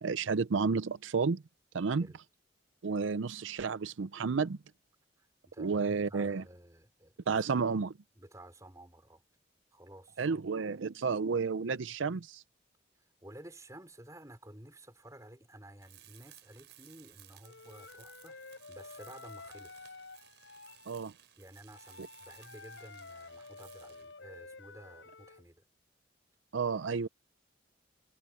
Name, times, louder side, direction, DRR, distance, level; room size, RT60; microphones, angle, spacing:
voice 1, 0.0-1.4 1.7-2.1 2.8-4.6 5.6-6.4 7.3-7.9 10.2-12.4 20.9-21.1 22.0-22.1 26.5-27.1, right 5 dB, 80° right, 0.5 m, -31 dB
voice 2, 1.9-2.2 5.2-7.4 8.2-9.2 9.7-10.2 13.0-19.9 21.4-25.6, right 1 dB, 15° right, 4.1 m, -53 dB
Tools, 15.8-24.2, right 12 dB, 65° right, 5.7 m, -59 dB
Wind instrument woodwind instrument, 17.4-20.9 21.7-25.5, left 3 dB, 80° left, 5.0 m, -51 dB
head